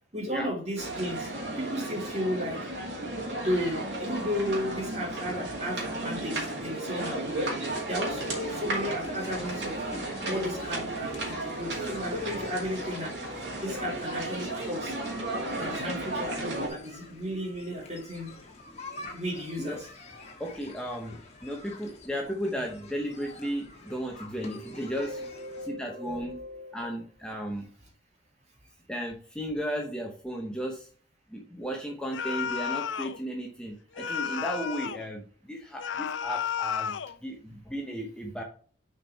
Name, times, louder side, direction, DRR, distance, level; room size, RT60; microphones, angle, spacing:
voice 1, 0.1-1.3 1.6-2.6 3.4-9.8 10.3-13.1 13.6-14.9 15.6-18.3 19.1-19.9 24.3-26.9, equal, 35° right, 0 dB, 2.3 m, -34 dB
sound 1, 0.8-16.7, right 2 dB, 65° right, 2.3 m, -34 dB
sound 2, 7.6-25.7, left 2 dB, 35° left, 1.4 m, -47 dB
voice 2, 20.4-25.2 25.7-26.4 26.7-27.7 28.9-30.9 31.3-38.4, equal, 5° left, 0 dB, 0.8 m, -35 dB
sound 3, 32.1-33.2 34.0-35.1 35.8-37.2, left 8 dB, 85° left, 0.5 m, -32 dB
6.8 x 4.5 x 4.1 m, 0.44 s
head